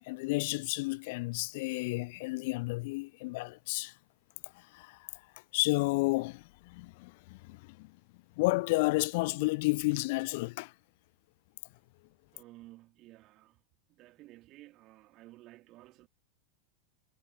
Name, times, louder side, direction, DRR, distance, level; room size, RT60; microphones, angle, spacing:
voice 1, 0.0-4.0 4.5-5.2 5.5-8.0 8.4-10.7, left 24 dB, 50° left, 0.6 m, -32 dB
voice 2, 12.3-13.6 13.9-16.1, right 17 dB, 35° right, 2.4 m, -54 dB
figure-of-eight pair, 90°, 0 cm